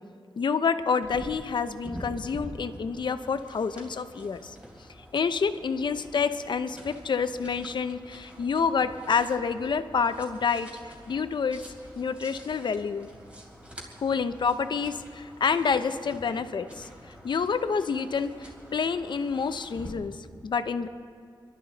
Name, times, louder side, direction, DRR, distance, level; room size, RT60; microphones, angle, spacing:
voice 1, 0.4-4.6 5.1-11.6 12.0-13.1 14.0-16.9 17.2-20.2 20.4-20.9, left 5 dB, 70° left, 10 dB, 0.7 m, -28 dB
sound 1, 1.0-19.9, equal, 15° right, 3.3 m, -47 dB
26.5 x 12.5 x 4.1 m, 2.3 s
wide cardioid pair, 145°, 8 cm